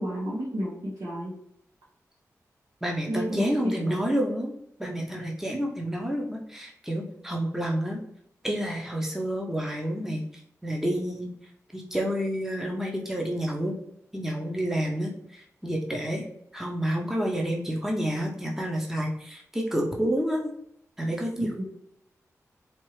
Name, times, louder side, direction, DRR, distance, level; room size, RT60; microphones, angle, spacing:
voice 1, 0.0-1.4 3.1-4.2 21.4-21.6, equal, 80° right, -6 dB, 1.1 m, -31 dB
voice 2, 2.8-4.5 4.8-8.0 8.4-10.2 10.6-11.3 11.7-13.7 14.1-16.2 16.5-20.5 21.0-21.6, equal, 5° right, 0 dB, 0.8 m, -29 dB
4.5 x 2.6 x 3.2 m, 0.72 s
wide cardioid pair, 85°, 6 cm